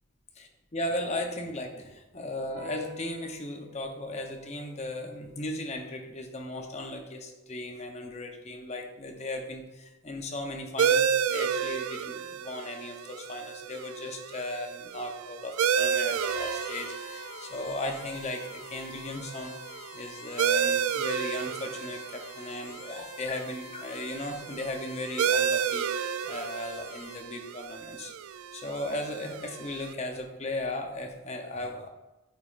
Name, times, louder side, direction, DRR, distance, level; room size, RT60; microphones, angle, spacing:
voice 1, 0.4-28.1 28.5-31.9, left 1 dB, 30° left, 3 dB, 0.7 m, -36 dB
sound 1, 2.6-9.3, left 2 dB, 35° right, 1.5 m, -50 dB
sound 2, 10.8-29.9, right 7 dB, 85° right, 0.3 m, -31 dB
sound 3, 16.1-27.5, left 6 dB, 70° left, 1.4 m, -48 dB
8.9 x 5.2 x 2.4 m, 1.1 s
head